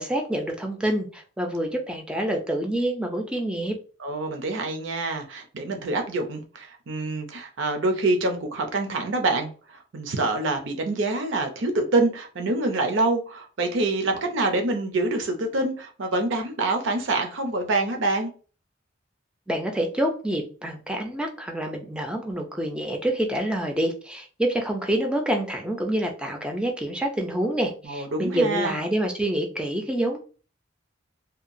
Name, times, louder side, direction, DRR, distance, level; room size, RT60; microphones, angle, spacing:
voice 1, 0.0-3.7 19.5-30.2, right 1 dB, 5° right, 2 dB, 0.4 m, -27 dB
voice 2, 4.0-18.3 27.8-28.8, right 2 dB, 70° right, 5 dB, 0.6 m, -26 dB
2.8 x 2.3 x 2.5 m, 0.37 s
head